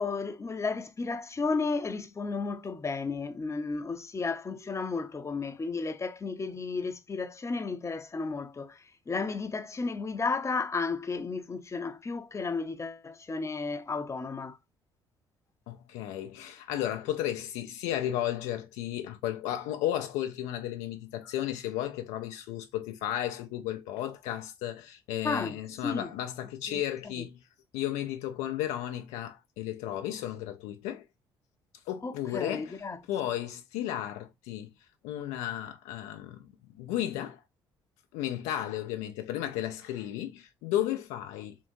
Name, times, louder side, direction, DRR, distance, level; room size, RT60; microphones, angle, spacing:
voice 1, 0.0-14.6 25.2-25.6 25.8-26.1 26.7-26.8 27.2-27.3 32.0-33.0, left 4 dB, 20° left, 0.7 m, -33 dB
voice 2, 15.7-27.4 27.7-31.0 31.9-32.7 33.1-34.7 35.0-36.5 36.8-37.4 38.1-41.6, left 12 dB, 65° left, 0.5 m, -34 dB
3.6 x 3.5 x 2.5 m
figure-of-eight pair, 45°, 13 cm